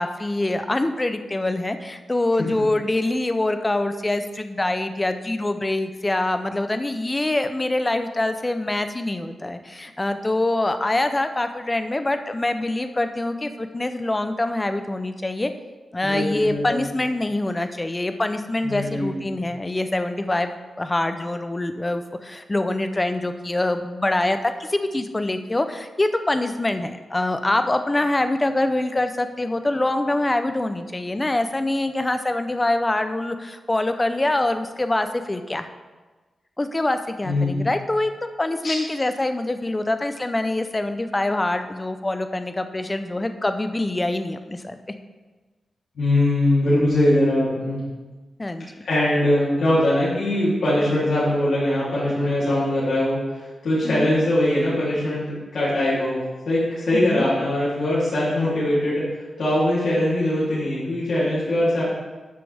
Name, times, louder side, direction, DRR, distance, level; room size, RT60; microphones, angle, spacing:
voice 1, 0.0-15.5 15.9-20.5 20.8-35.6 36.6-38.1 38.4-44.8 48.4-48.7 53.8-54.1 56.9-57.3, left 2 dB, 15° left, 8 dB, 0.6 m, -24 dB
voice 2, 16.0-16.8 18.6-19.3 37.2-37.5 38.6-38.7 45.9-47.8 48.8-59.1 59.4-61.8, left 1 dB, 75° left, -9 dB, 3.1 m, -22 dB
12.5 x 6.9 x 3.5 m, 1.3 s
wide cardioid pair, 135°, 0 cm